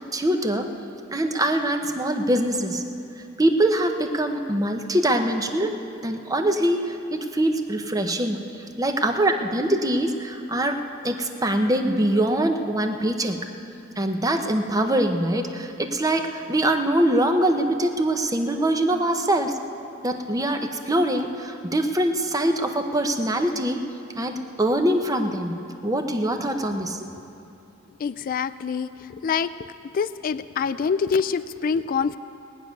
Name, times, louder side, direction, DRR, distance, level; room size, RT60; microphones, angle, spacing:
voice 1, 0.1-0.7 1.1-2.8 3.4-8.4 8.8-13.4 14.0-19.6 20.0-23.8 24.2-27.1, right 1 dB, 20° right, 6 dB, 0.9 m, -23 dB
voice 2, 28.0-28.9 29.2-29.5 29.9-32.2, left 6 dB, 45° left, 13 dB, 0.3 m, -25 dB
20.0 x 6.7 x 9.4 m, 2.7 s
head